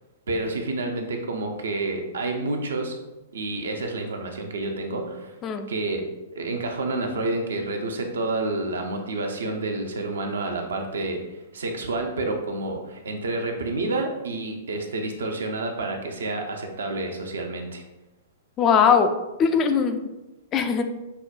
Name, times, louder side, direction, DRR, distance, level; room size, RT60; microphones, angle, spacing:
voice 1, 0.3-3.0 3.3-5.3 5.7-6.0 6.3-11.2 11.5-17.8, right 2 dB, 70° right, 3 dB, 0.6 m, -29 dB
voice 2, 18.6-19.1 19.4-20.0 20.5-20.8, left 6 dB, 30° left, 7 dB, 0.3 m, -20 dB
5.5 x 2.2 x 2.5 m, 1.0 s
figure-of-eight pair, 105°, 0 cm